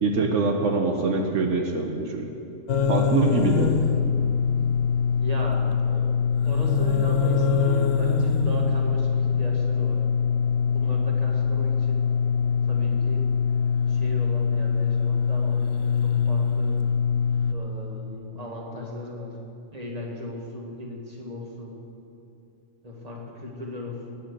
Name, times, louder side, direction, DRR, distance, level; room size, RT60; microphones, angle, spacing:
voice 1, 0.0-2.3 2.9-3.7, right 3 dB, 80° right, 3 dB, 1.4 m, -24 dB
sound 1, 2.7-17.5, left 6 dB, 80° left, 1.2 m, -23 dB
voice 2, 5.2-6.0 6.4-10.0 10.7-12.0 12.6-13.3 13.9-16.8 17.5-19.4 19.7-21.7 22.8-24.2, left 1 dB, 30° right, -1 dB, 2.2 m, -37 dB
19.0 x 8.7 x 6.7 m, 2.7 s
omnidirectional pair, 1.3 m